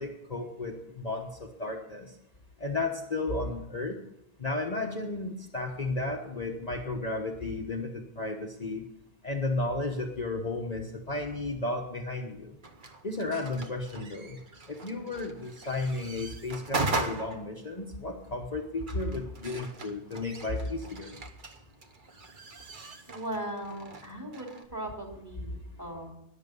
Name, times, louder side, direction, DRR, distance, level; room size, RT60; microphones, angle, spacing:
voice 1, 0.0-2.1 2.6-4.0 4.4-8.8 9.2-12.6 13.0-14.4 14.7-21.1, left 2 dB, 35° left, 1 dB, 1.2 m, -33 dB
sound 1, 12.6-24.7, right 3 dB, 50° right, 1.2 m, -39 dB
voice 2, 23.1-26.1, right 1 dB, 20° right, 0 dB, 3.4 m, -38 dB
21.0 x 7.4 x 5.4 m, 0.82 s
omnidirectional pair, 1.2 m